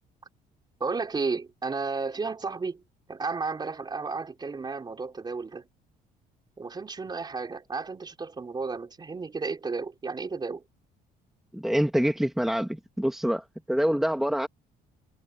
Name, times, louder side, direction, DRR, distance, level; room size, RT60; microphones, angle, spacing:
voice 1, 0.8-2.8 3.1-5.7 6.6-10.6, right 4 dB, 25° right, 3.9 m, -33 dB
voice 2, 11.5-14.5, equal, ahead, 1.9 m, -26 dB
cardioid pair, 110°, 17 cm